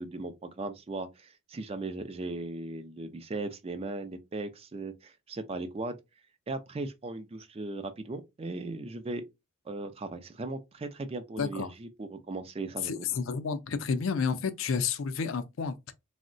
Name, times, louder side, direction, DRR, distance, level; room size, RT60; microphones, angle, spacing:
voice 1, 0.0-6.0 6.5-9.2 9.7-13.1, right 2 dB, 30° right, 0.4 m, -37 dB
voice 2, 11.4-11.7 12.8-15.9, left 5 dB, 70° left, 0.4 m, -31 dB
3.6 x 2.1 x 2.5 m
head